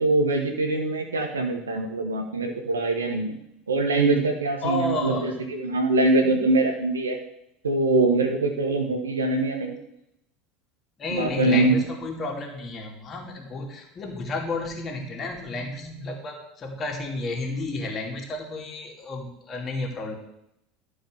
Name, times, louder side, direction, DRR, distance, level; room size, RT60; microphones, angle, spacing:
voice 1, 0.0-3.4 3.7-7.2 7.6-9.7 11.1-11.8, right 2 dB, 85° right, 4 dB, 1.5 m, -23 dB
voice 2, 4.6-5.4 11.0-20.1, left 2 dB, 35° left, 0 dB, 2.8 m, -31 dB
12.0 x 5.0 x 6.5 m, 0.79 s
hypercardioid pair, 75°, 0 cm